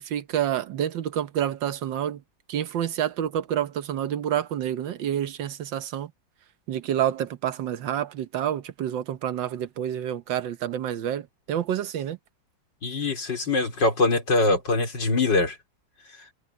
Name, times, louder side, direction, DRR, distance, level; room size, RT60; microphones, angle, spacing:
voice 1, 0.0-2.2 2.5-6.1 6.7-12.2, right 10 dB, 80° right, 1.7 m, -28 dB
voice 2, 12.8-15.6, left 3 dB, 70° left, 4.7 m, -23 dB
omnidirectional pair, 2.0 m